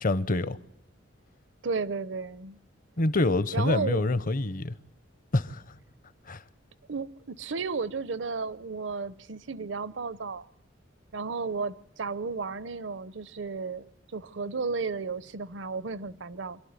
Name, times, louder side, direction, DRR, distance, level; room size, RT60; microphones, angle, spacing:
voice 1, 0.0-0.6 3.0-4.7 5.3-5.6 6.3-6.4, left 2 dB, 45° left, 0.8 m, -26 dB
voice 2, 1.6-2.6 3.5-4.1 6.9-10.5 11.1-13.8 14.1-16.6, right 4 dB, 70° right, 0.7 m, -33 dB
27.0 x 12.0 x 9.5 m
head